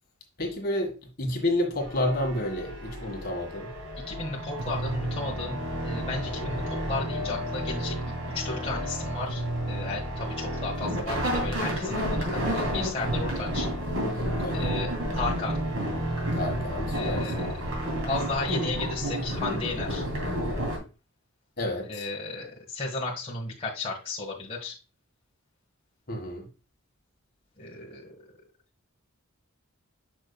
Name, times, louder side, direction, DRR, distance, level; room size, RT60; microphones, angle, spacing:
voice 1, 0.4-3.7 14.4-14.8 16.3-17.5 21.6-22.1 26.1-26.5, left 1 dB, 45° left, 1.7 m, -30 dB
sound 1, 1.8-20.8, equal, 80° right, 2.8 m, -31 dB
voice 2, 4.0-13.7 14.5-15.6 16.9-20.0 21.9-24.7 27.6-28.2, left 3 dB, 30° left, 1.5 m, -34 dB
6.7 x 6.1 x 2.3 m
head